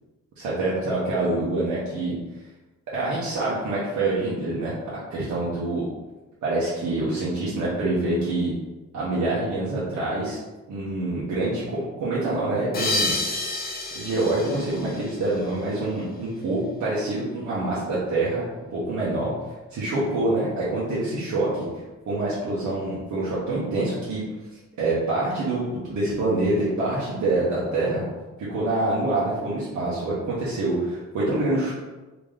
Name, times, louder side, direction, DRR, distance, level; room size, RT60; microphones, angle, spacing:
voice 1, 0.4-2.1 2.9-4.7 5.1-5.9 6.4-8.5 8.9-10.4 10.7-13.2 13.9-18.4 18.7-19.3 19.7-21.7 22.1-24.2 24.8-28.0 28.4-31.7, right 2 dB, 80° right, -8 dB, 1.0 m, -26 dB
sound 1, 12.7-15.8, left 2 dB, 30° left, 0.6 m, -29 dB
3.7 x 2.9 x 3.2 m, 1.2 s
wide cardioid pair, 175°, 29 cm